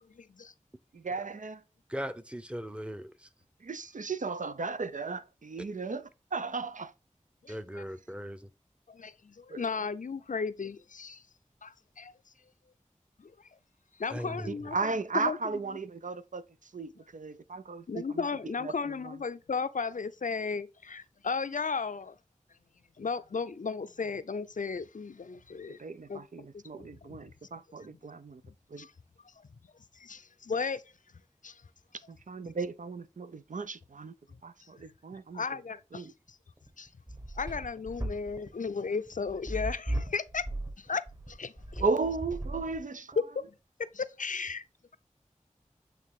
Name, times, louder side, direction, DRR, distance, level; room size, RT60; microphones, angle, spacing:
voice 1, 0.2-0.5 7.4-7.9 8.9-11.2 11.6-12.1 13.2-13.3 14.0-14.8 15.1-15.4 17.9-22.1 23.0-25.8 26.1-26.2 26.5-27.2 28.8-28.9 30.0-30.8 31.4-31.6 35.3-36.1 36.8-36.9 37.4-40.5 40.8-41.0 41.3-41.8 43.2-43.5 43.8-44.6, left 5 dB, 80° left, 0.5 m, -35 dB
voice 2, 0.9-1.6 3.6-6.9 7.5-7.6 9.5-9.6 14.5-19.2 25.8-28.4 28.7-28.9 32.1-34.1 34.4-35.6 35.9-36.1 41.8-43.2, right 4 dB, 80° right, 0.5 m, -35 dB
voice 3, 1.9-3.1 7.5-8.4 14.1-14.5, equal, 10° right, 0.7 m, -38 dB
sound 1, 36.6-43.1, right 1 dB, 25° right, 1.5 m, -36 dB
8.4 x 3.3 x 3.6 m
wide cardioid pair, 45°, 13 cm